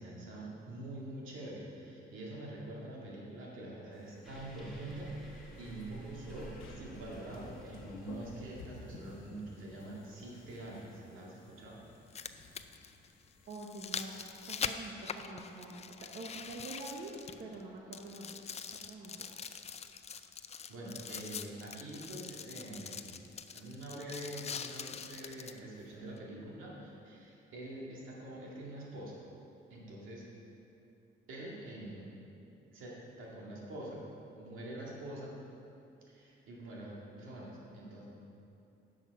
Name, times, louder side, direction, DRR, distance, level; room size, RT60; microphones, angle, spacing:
voice 1, 0.0-11.8 20.7-23.2 23.5-29.2 29.7-30.2 31.3-32.1 32.7-34.0 34.3-35.3 36.1-38.1, right 1 dB, 85° right, -4 dB, 2.1 m, -45 dB
sound 1, 3.9-13.5, left 3 dB, 90° left, 1.0 m, -55 dB
sound 2, 4.2-9.2, right 2 dB, ahead, 2.0 m, -50 dB
sound 3, 8.6-8.7 10.7-10.8 11.9-17.6 17.9-25.6 26.2-26.3, left 6 dB, 35° left, 0.4 m, -43 dB
voice 2, 13.5-15.8 16.1-17.1 17.4-18.3 18.7-19.1, right 2 dB, 55° right, -2 dB, 1.0 m, -46 dB
10.5 x 6.4 x 4.7 m, 2.8 s
cardioid pair, 90°, 20 cm